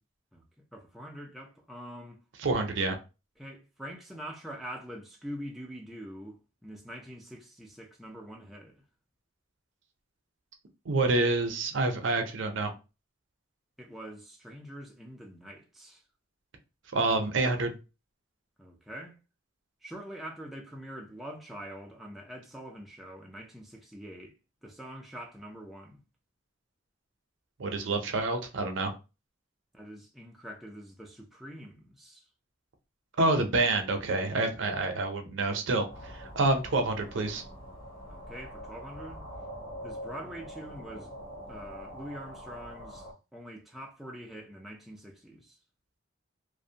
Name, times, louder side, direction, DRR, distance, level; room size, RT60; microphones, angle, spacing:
voice 1, 0.7-2.2 3.4-8.8 13.8-16.0 18.6-19.2 19.8-24.3 24.6-26.0 29.7-32.2 38.1-39.2 39.8-41.1 41.5-45.6, equal, ahead, 0.3 m, -44 dB
voice 2, 2.4-3.0 10.9-12.7 16.9-17.7 27.6-28.9 33.2-37.4, right 2 dB, 65° right, 0.5 m, -27 dB
sound 1, 35.9-43.1, equal, 45° left, 0.9 m, -44 dB
2.5 x 2.0 x 2.7 m
head